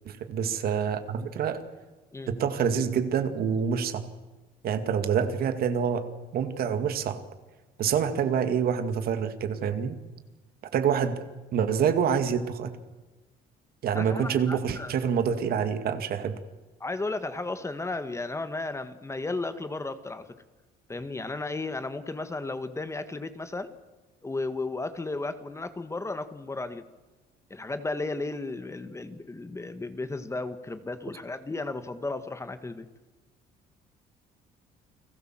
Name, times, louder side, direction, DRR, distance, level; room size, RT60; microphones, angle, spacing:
voice 1, 0.1-1.6 2.3-4.0 4.6-6.1 6.3-7.2 7.8-10.0 10.7-11.2 11.5-12.7 13.8-16.4, right 7 dB, 65° right, 9 dB, 2.3 m, -26 dB
voice 2, 13.9-14.9 16.8-20.3 20.9-23.7 24.2-26.9 27.5-32.9, left 3 dB, 15° left, 10 dB, 1.6 m, -34 dB
30.0 x 19.0 x 7.6 m, 1.2 s
cardioid pair, 110°, 17 cm